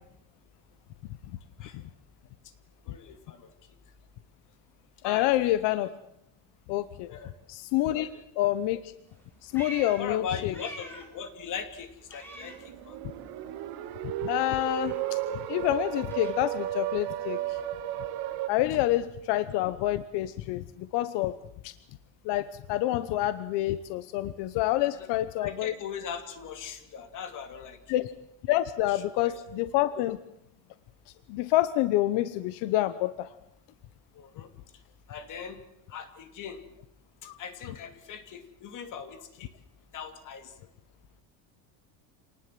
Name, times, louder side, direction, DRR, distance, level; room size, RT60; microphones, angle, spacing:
voice 1, 2.8-3.7 5.0-5.6 7.1-7.3 7.9-8.2 10.0-13.0 24.9-25.1 25.4-27.9 28.9-29.4 34.1-34.5 35.1-35.6 35.9-36.6 37.2-39.5 39.9-40.7, left 7 dB, 40° left, 8 dB, 2.9 m, -40 dB
voice 2, 5.0-5.9 6.7-7.1 7.5-8.1 8.4-8.9 9.4-10.5 14.2-15.0 15.5-17.6 18.5-21.3 21.6-21.7 22.2-25.7 27.9-28.1 28.4-30.2 31.3-33.3 37.2-37.3, left 15 dB, 55° left, 13 dB, 1.0 m, -27 dB
Meow, 9.1-11.2 11.5-13.2 13.5-17.7, right 1 dB, 5° left, 5.6 m, -48 dB
sound 1, 12.3-18.5, right 13 dB, 50° right, 1.8 m, -34 dB
27.5 x 19.5 x 7.7 m, 0.79 s
cardioid pair, 170°, 49 cm